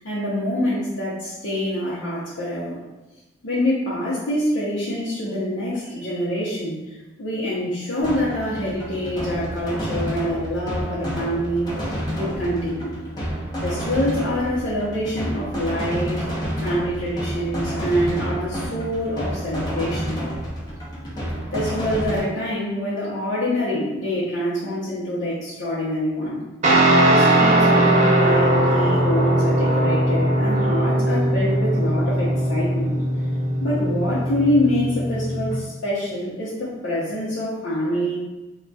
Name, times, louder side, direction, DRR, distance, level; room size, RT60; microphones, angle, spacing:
voice 1, 0.0-2.8 3.4-11.7 12.1-12.9 13.6-16.2 16.6-20.2 21.5-26.4 27.1-33.0 33.6-38.2, equal, 70° left, -10 dB, 0.7 m, -25 dB
sound 1, 8.0-22.2, equal, 20° left, 0.6 m, -29 dB
Guitar, 26.6-35.5, right 1 dB, 35° right, 0.5 m, -19 dB
2.2 x 2.2 x 3.9 m, 1.1 s
head